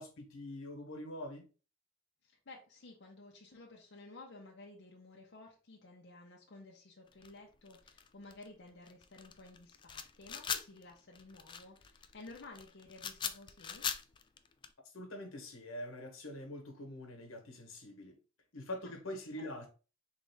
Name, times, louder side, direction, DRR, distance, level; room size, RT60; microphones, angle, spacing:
voice 1, 0.0-1.4 14.9-18.1 18.5-19.7, left 1 dB, 85° left, 1.2 m, -44 dB
voice 2, 2.2-13.9 18.8-19.0 19.4-19.7, left 2 dB, 60° left, 0.7 m, -54 dB
sound 1, 7.1-14.7, left 7 dB, 25° left, 0.3 m, -42 dB
3.7 x 3.1 x 3.4 m
head